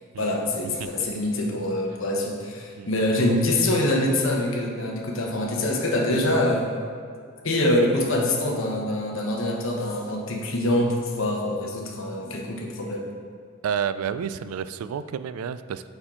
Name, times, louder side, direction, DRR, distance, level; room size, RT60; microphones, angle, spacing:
voice 1, 0.2-6.7 7.4-13.1, left 1 dB, 60° left, 0 dB, 1.0 m, -25 dB
voice 2, 13.6-15.9, right 7 dB, 80° right, 14 dB, 0.3 m, -30 dB
8.6 x 4.5 x 3.7 m, 2.2 s
head